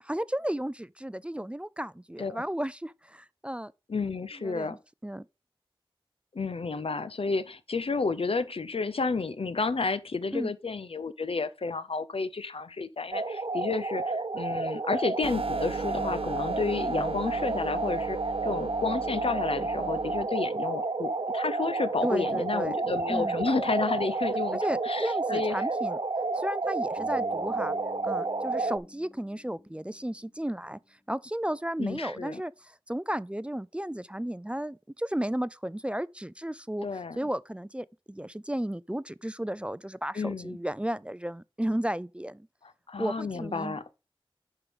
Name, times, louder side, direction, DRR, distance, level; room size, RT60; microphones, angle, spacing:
voice 1, 0.0-3.7 4.4-5.3 10.3-10.5 22.0-22.8 23.1-23.4 24.5-26.0 26.3-27.8 28.0-30.8 31.1-36.9 37.2-42.5 43.0-43.8, right 1 dB, 10° right, 0.3 m, -33 dB
voice 2, 3.9-4.8 6.3-24.6 24.8-25.7 31.8-32.4 36.8-37.2 40.2-40.6 42.9-43.9, left 4 dB, 80° left, 0.6 m, -31 dB
sound 1, 13.1-28.8, right 3 dB, 55° right, 0.8 m, -31 dB
sound 2, 15.2-20.2, right 4 dB, 85° right, 0.9 m, -39 dB
Bass guitar, 27.0-30.9, left 1 dB, 45° left, 2.9 m, -52 dB
10.5 x 3.7 x 5.1 m
wide cardioid pair, 55°, 10 cm